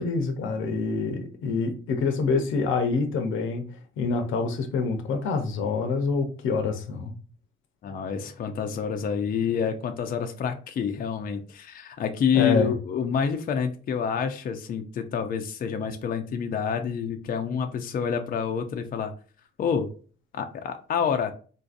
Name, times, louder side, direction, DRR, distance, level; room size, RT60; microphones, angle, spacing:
voice 1, 0.0-3.7 4.0-7.1 12.3-12.7, left 4 dB, 80° left, 0.7 m, -26 dB
voice 2, 7.8-19.1 19.6-19.9 20.3-21.3, left 7 dB, 45° left, 0.4 m, -28 dB
3.8 x 2.6 x 2.4 m
cardioid pair, 90°, 20 cm